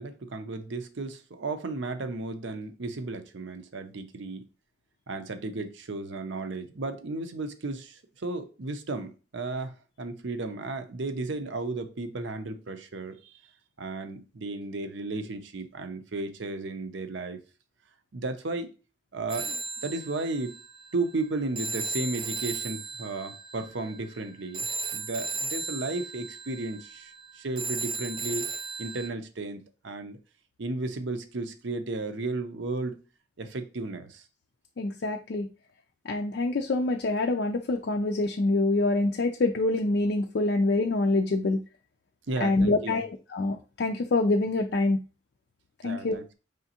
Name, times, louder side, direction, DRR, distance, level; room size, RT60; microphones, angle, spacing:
voice 1, 0.0-4.5 5.1-13.4 13.8-17.4 18.1-18.7 19.1-20.6 20.9-24.7 24.9-28.5 28.8-30.2 30.6-33.0 33.4-34.3 42.3-43.0 45.8-46.3, right 3 dB, 65° right, 0.6 m, -34 dB
Telephone, 19.3-29.1, right 4 dB, 25° right, 0.3 m, -36 dB
voice 2, 34.8-35.5 36.1-41.6 42.4-45.0 45.8-46.2, left 2 dB, 55° left, 0.4 m, -26 dB
5.0 x 3.4 x 2.8 m
head